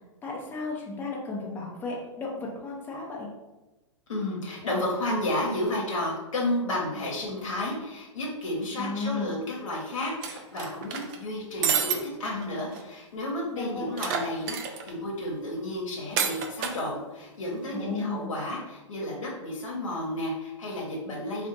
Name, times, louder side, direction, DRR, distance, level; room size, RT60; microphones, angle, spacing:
voice 1, 0.2-3.3 8.8-9.3 13.5-13.9 17.7-18.2, left 3 dB, 10° left, -3 dB, 0.6 m, -34 dB
voice 2, 4.1-21.5, left 1 dB, 85° left, -3 dB, 0.9 m, -32 dB
sound 1, 10.2-11.2 11.6-12.0 12.4-12.5 12.7-12.8 14.0-14.9 16.2-16.8, right 7 dB, 40° right, 0.4 m, -28 dB
2.5 x 2.3 x 3.8 m, 1.1 s
hypercardioid pair, 125°, 16 cm